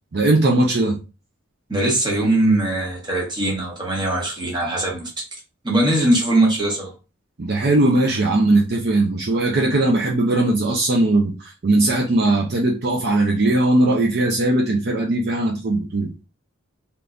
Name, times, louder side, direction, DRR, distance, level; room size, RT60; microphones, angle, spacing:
voice 1, 0.1-1.0 7.4-16.1, right 2 dB, 50° right, 0.5 m, -19 dB
voice 2, 1.7-5.2 5.6-6.9, right 1 dB, 20° right, 1.0 m, -20 dB
3.4 x 3.0 x 2.5 m
head